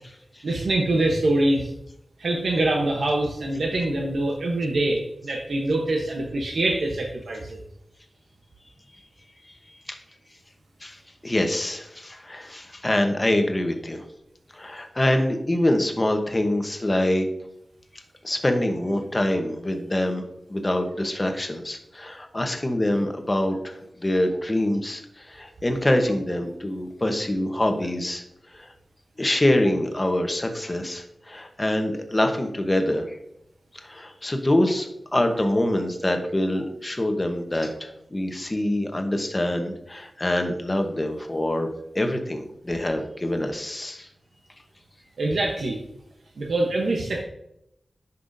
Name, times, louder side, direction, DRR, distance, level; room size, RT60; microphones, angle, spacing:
voice 1, 0.4-1.7 2.2-7.6 45.2-45.8 46.4-47.2, right 2 dB, 80° right, 0 dB, 0.9 m, -24 dB
voice 2, 10.8-14.0 14.5-17.3 18.2-20.2 20.5-28.2 28.5-28.7 29.2-33.2 33.7-41.7 41.9-44.1, left 1 dB, 25° left, 5 dB, 1.0 m, -25 dB
10.5 x 5.5 x 2.6 m, 0.79 s
wide cardioid pair, 95°, 0 cm